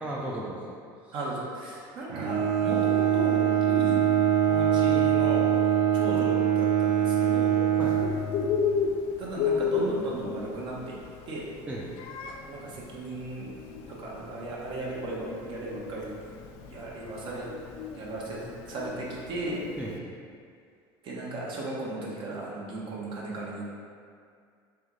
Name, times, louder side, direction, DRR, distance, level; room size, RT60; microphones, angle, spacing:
voice 1, 0.0-1.1 7.8-8.0 11.7-11.9 19.7-20.0, right 1 dB, 10° right, -5 dB, 0.5 m, -36 dB
voice 2, 1.1-4.0 4.5-5.5 5.9-7.6 9.2-11.0 11.3-11.4 12.4-13.5 13.9-16.1 16.6-17.5 17.9-19.6 21.0-23.7, right 2 dB, 50° right, -4 dB, 1.0 m, -36 dB
Bowed string instrument, 2.1-8.8, right 9 dB, 80° right, 0.5 m, -24 dB
Bird, 7.8-19.9, left 5 dB, 60° left, 0.4 m, -33 dB
3.3 x 3.0 x 3.8 m, 2.2 s
supercardioid pair, 95°, 11 cm